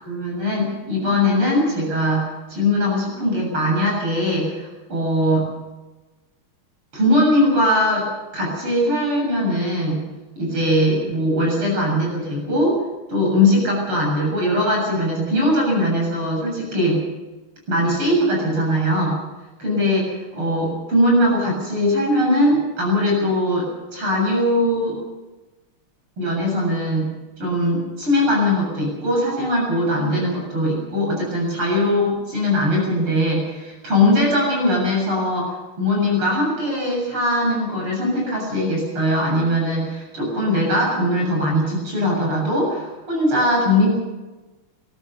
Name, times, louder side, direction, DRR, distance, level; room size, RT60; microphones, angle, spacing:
voice 1, 0.0-5.5 6.9-8.0 8.3-10.0 10.4-12.8 13.1-17.1 17.7-19.2 19.6-20.1 20.3-23.7 23.9-25.0 26.2-27.1 27.4-35.5 35.8-44.0, left 1 dB, 80° right, -1 dB, 8.4 m, -20 dB
21.0 x 18.0 x 6.9 m, 1.2 s
omnidirectional pair, 2.4 m